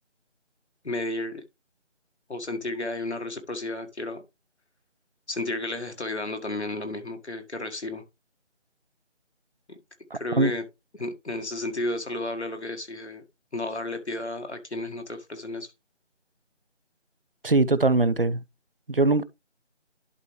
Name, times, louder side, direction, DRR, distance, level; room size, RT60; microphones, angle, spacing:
voice 1, 0.8-1.4 2.3-4.2 5.3-8.0 9.7-9.8 10.1-10.6 11.0-13.2 13.5-15.7, left 2 dB, 65° left, 1.7 m, -32 dB
voice 2, 10.1-10.5 17.4-18.4 18.9-19.2, right 3 dB, 50° right, 0.5 m, -22 dB
11.0 x 4.6 x 3.2 m
figure-of-eight pair, 175°, 36 cm